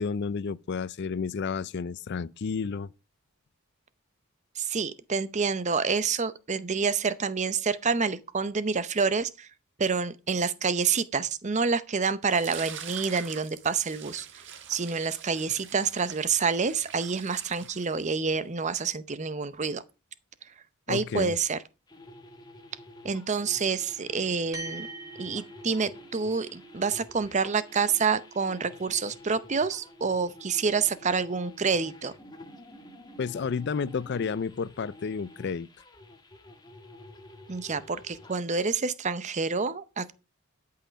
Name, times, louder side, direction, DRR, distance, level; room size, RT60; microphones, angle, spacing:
voice 1, 0.0-2.9 20.9-21.4 33.2-35.7, left 5 dB, 50° left, 0.4 m, -31 dB
voice 2, 4.6-9.5 9.8-14.3 14.7-19.8 20.9-21.6 23.0-24.9 25.2-32.1 37.5-40.1, right 5 dB, 35° right, 0.6 m, -28 dB
sound 1, 12.3-18.4, right 8 dB, 55° right, 1.4 m, -44 dB
sound 2, 21.9-38.4, left 1 dB, 20° left, 1.3 m, -50 dB
sound 3, 24.5-33.2, right 3 dB, 15° right, 2.1 m, -48 dB
12.5 x 5.7 x 5.1 m
head